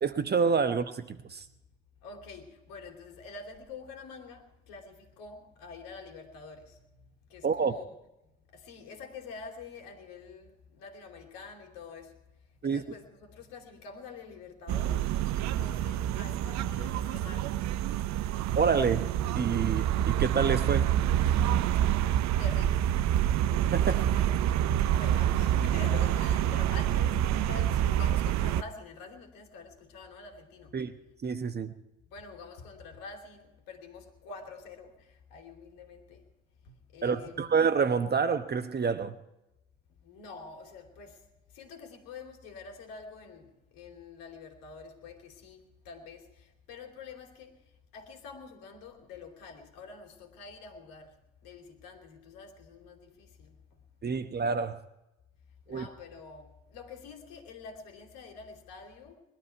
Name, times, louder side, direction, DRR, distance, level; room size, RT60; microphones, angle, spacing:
voice 1, 0.0-1.4 7.4-7.7 12.6-12.8 18.5-19.1 19.3-20.9 23.7-24.0 30.7-30.9 31.2-31.7 37.0-39.2 54.0-54.8 55.7-55.9, right 5 dB, 25° right, 1.1 m, -28 dB
voice 2, 2.0-7.9 8.5-12.2 12.6-17.7 22.4-22.9 23.8-24.3 24.8-30.7 32.1-36.2 36.6-37.5 40.0-41.2 41.5-47.6 47.9-51.1 51.4-53.6 55.7-59.2, left 4 dB, 60° left, 3.0 m, -47 dB
sound 1, 14.7-28.6, right 11 dB, 45° right, 0.7 m, -27 dB
21.0 x 12.5 x 4.6 m
figure-of-eight pair, 65°, 38 cm